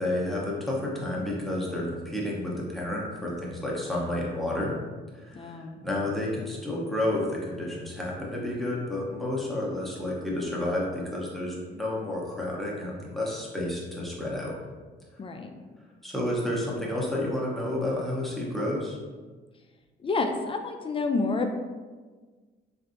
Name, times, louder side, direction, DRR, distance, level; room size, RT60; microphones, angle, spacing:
voice 1, 0.0-4.7 5.1-14.5 16.0-19.0, left 1 dB, ahead, -4 dB, 0.8 m, -30 dB
voice 2, 5.3-5.8 15.2-15.5 20.0-21.5, left 3 dB, 25° left, 5 dB, 0.3 m, -29 dB
3.2 x 2.6 x 2.6 m, 1.4 s
cardioid pair, 90°, 20 cm